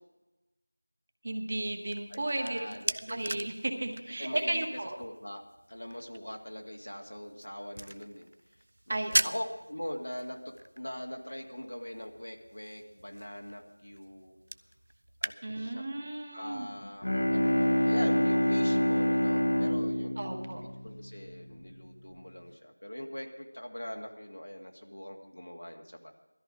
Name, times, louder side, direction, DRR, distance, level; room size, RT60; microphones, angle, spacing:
voice 1, 1.2-5.0 8.9-9.3 15.4-16.7 20.2-20.6, right 2 dB, 30° right, 4 dB, 1.4 m, -34 dB
sound 1, 1.6-15.4, right 1 dB, 50° right, 0.5 m, -40 dB
voice 2, 2.1-3.2 4.2-4.7 5.0-5.4 5.7-8.3 8.9-14.4 15.2-15.9 16.3-20.2 20.8-26.1, equal, 85° left, 2 dB, 2.0 m, -42 dB
Bowed string instrument, 16.8-21.6, left 1 dB, 55° left, 1.2 m, -27 dB
17.5 x 13.5 x 5.0 m, 1.1 s
figure-of-eight pair, 175°, 0 cm